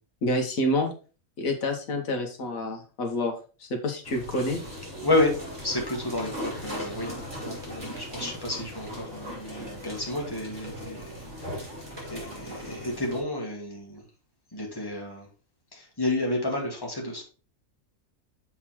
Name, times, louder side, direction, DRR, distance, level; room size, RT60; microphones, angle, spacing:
voice 1, 0.2-0.9 1.4-3.3 3.6-4.6, left 1 dB, 85° left, 4 dB, 1.6 m, -28 dB
sound 1, 4.0-13.2, equal, 30° right, 4.2 m, -38 dB
voice 2, 5.0-11.7 12.1-14.0 14.5-15.3 15.7-17.2, left 2 dB, 15° left, -1 dB, 1.9 m, -31 dB
7.4 x 4.0 x 4.4 m, 0.35 s
omnidirectional pair, 1.4 m